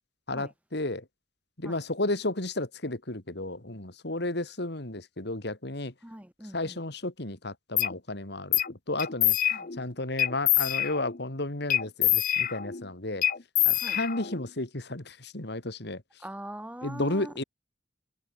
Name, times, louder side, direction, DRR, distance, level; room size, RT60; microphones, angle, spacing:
voice 1, 0.3-1.0 1.6-5.9 6.5-13.2 13.7-16.0 16.8-17.4, left 2 dB, 65° left, 2.9 m, -33 dB
voice 2, 6.0-6.8 9.5-9.7 13.7-14.0 16.2-17.3, right 1 dB, 10° right, 2.4 m, -42 dB
sound 1, 7.8-7.9 8.5-8.7 9.0-9.8 10.2-11.2 11.7-12.8 13.2-14.5, left 13 dB, 50° left, 1.1 m, -26 dB
head